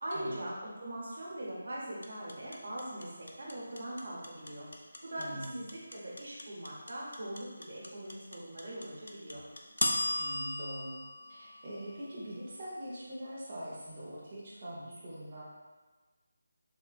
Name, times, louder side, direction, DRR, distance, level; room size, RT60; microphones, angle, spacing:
voice 1, 0.0-4.7 5.0-9.4, right 1 dB, 50° right, -4 dB, 0.8 m, -41 dB
sound 1, 2.0-12.2, left 1 dB, 75° left, 0.4 m, -36 dB
voice 2, 5.2-5.6 10.2-10.9 11.3-15.4, right 1 dB, 20° right, -8 dB, 0.4 m, -43 dB
3.6 x 2.3 x 2.4 m, 1.3 s
figure-of-eight pair, 180°, 0 cm